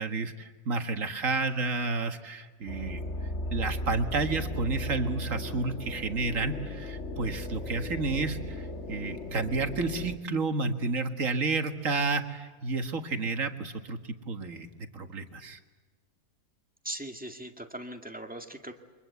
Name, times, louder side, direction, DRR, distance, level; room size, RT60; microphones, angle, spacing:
voice 1, 0.0-3.0 3.5-15.6, right 3 dB, 55° right, 7 dB, 2.0 m, -31 dB
sound 1, 2.7-10.2, left 1 dB, 45° left, 2.0 m, -36 dB
voice 2, 16.8-18.7, right 1 dB, 5° right, 4 dB, 1.9 m, -39 dB
29.0 x 24.5 x 8.3 m, 1.4 s
omnidirectional pair, 1.7 m